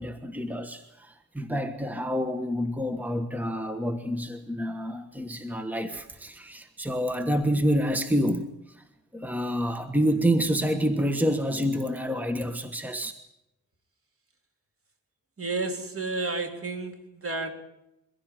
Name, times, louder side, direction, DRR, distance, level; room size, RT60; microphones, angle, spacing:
voice 1, 0.0-8.8 9.1-13.1, equal, 5° right, 8 dB, 1.4 m, -28 dB
voice 2, 15.4-17.5, right 3 dB, 45° right, 5 dB, 3.4 m, -31 dB
23.5 x 16.0 x 9.2 m, 0.88 s
wide cardioid pair, 115°, 31 cm